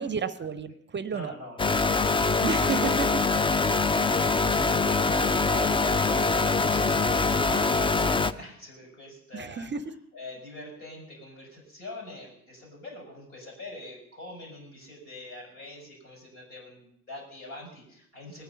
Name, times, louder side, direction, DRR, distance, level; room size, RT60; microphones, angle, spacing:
voice 1, 0.0-1.3 2.4-3.3 9.3-9.9, right 5 dB, 30° right, 15 dB, 0.7 m, -31 dB
voice 2, 1.1-2.6 3.7-9.7 10.1-18.4, left 2 dB, 70° left, -2 dB, 5.8 m, -44 dB
sound 1, 1.6-8.3, left 3 dB, 15° left, 0.5 m, -24 dB
19.5 x 9.8 x 5.6 m, 0.72 s
figure-of-eight pair, 45°, 38 cm